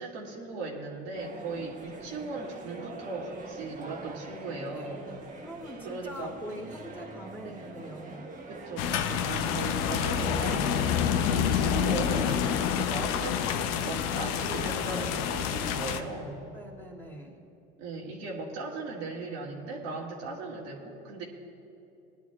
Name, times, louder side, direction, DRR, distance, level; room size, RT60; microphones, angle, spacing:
voice 1, 0.0-5.0 5.8-6.4 7.4-7.7 8.5-16.5 17.8-21.2, right 3 dB, 70° right, -3 dB, 2.4 m, -38 dB
sound 1, 1.1-11.3, right 3 dB, 25° right, 1.5 m, -44 dB
voice 2, 5.4-8.3 16.5-17.4, equal, 5° left, -2 dB, 2.7 m, -44 dB
sound 2, 8.8-16.0, left 8 dB, 65° left, 0.8 m, -28 dB
20.0 x 11.0 x 2.4 m, 2.8 s
supercardioid pair, 95°, 29 cm